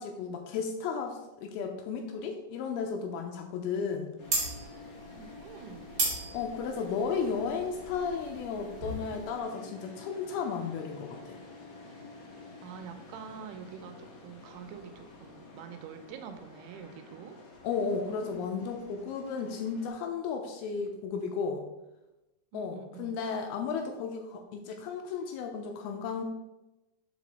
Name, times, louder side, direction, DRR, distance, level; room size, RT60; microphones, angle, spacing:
voice 1, 0.0-4.1 6.3-11.4 17.6-21.6 22.5-26.2, left 5 dB, 80° left, 4 dB, 2.3 m, -34 dB
sound 1, 4.2-19.9, left 3 dB, 60° left, 1.9 m, -49 dB
sound 2, 4.2-9.4, right 2 dB, 40° right, 1.8 m, -35 dB
voice 2, 5.2-6.0 12.6-17.4 17.8-18.6 22.5-23.2, right 7 dB, 85° right, 7 dB, 2.5 m, -46 dB
5.3 x 5.0 x 4.1 m, 0.99 s
omnidirectional pair, 4.7 m